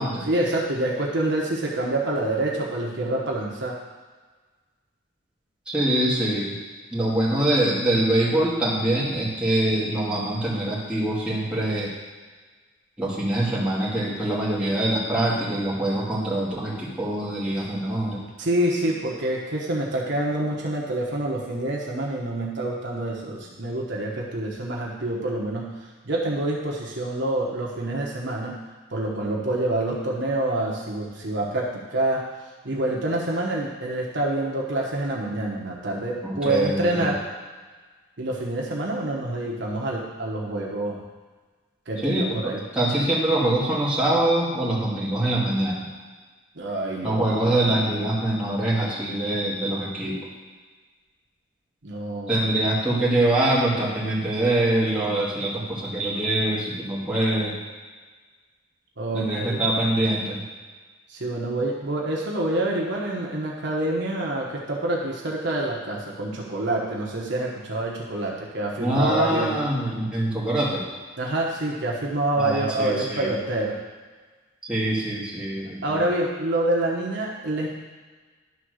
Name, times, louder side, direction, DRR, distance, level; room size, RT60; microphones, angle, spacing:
voice 1, 0.3-3.8 18.4-25.7 26.0-28.6 28.9-32.2 32.6-37.2 38.2-41.0 41.9-42.6 46.5-47.4 51.8-52.4 59.0-59.6 61.1-69.5 71.2-73.8 75.8-77.7, right 1 dB, 60° right, -2 dB, 1.2 m, -27 dB
voice 2, 5.7-6.6 6.9-11.9 13.0-18.3 36.2-37.2 42.0-45.9 47.0-50.2 52.3-57.6 59.1-60.4 68.8-70.9 72.4-73.4 74.6-76.0, right 1 dB, 5° right, -7 dB, 2.0 m, -24 dB
11.0 x 3.8 x 6.4 m, 1.4 s
head